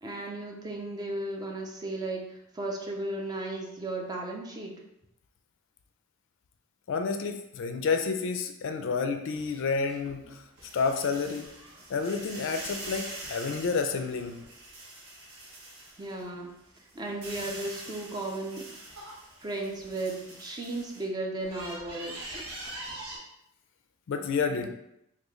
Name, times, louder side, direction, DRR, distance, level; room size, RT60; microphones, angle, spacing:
voice 1, 0.0-4.8 16.0-16.5 16.9-18.7 19.4-22.5, right 2 dB, 20° right, 1 dB, 0.4 m, -35 dB
voice 2, 6.9-10.3 10.7-11.5 11.9-14.4 24.1-24.7, left 5 dB, 60° left, 6 dB, 0.3 m, -29 dB
sound 1, 9.3-16.3 16.7-21.0 21.4-23.2, right 1 dB, 90° right, 1.0 m, -44 dB
3.0 x 2.3 x 3.5 m, 0.81 s
head